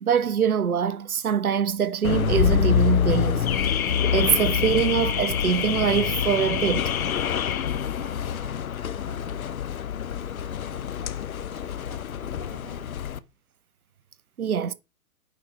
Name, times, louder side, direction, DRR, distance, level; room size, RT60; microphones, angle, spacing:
voice 1, 0.0-3.8 4.1-7.0 14.4-14.7, right 7 dB, 70° right, 0.9 m, -24 dB
Car / Alarm, 2.0-13.2, left 8 dB, 70° left, 0.8 m, -26 dB
voice 2, 7.8-8.7 9.1-9.7 10.1-13.1, right 5 dB, 10° right, 0.4 m, -51 dB
9.4 x 4.1 x 5.3 m
figure-of-eight pair, 120°, 45 cm